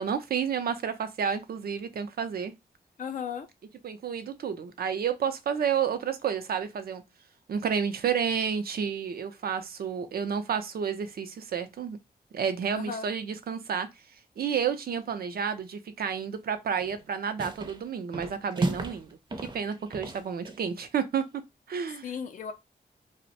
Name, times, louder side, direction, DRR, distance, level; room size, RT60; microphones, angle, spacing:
voice 1, 0.0-2.5 3.8-7.0 7.5-12.0 12.3-13.9 14.4-19.2 19.5-21.4 21.7-22.1, right 7 dB, 70° right, 0.5 m, -30 dB
voice 2, 3.0-3.5 12.7-13.1 22.0-22.5, left 6 dB, 55° left, 0.4 m, -35 dB
sound 1, 16.8-17.1 17.4-17.8 18.1-19.0 19.3-20.7, right 3 dB, 30° right, 0.6 m, -34 dB
2.5 x 2.1 x 3.9 m
cardioid pair, 85°, 16 cm